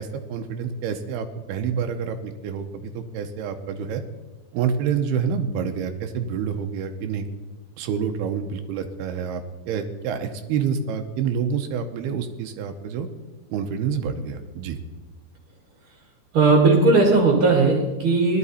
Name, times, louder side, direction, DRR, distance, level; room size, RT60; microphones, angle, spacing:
voice 1, 0.0-4.0 4.5-7.3 7.8-13.1 13.5-14.8, right 7 dB, 85° right, 6 dB, 2.8 m, -28 dB
voice 2, 16.3-18.4, right 3 dB, 45° right, 0 dB, 2.1 m, -17 dB
17.5 x 12.0 x 4.2 m, 1.2 s
omnidirectional pair, 4.5 m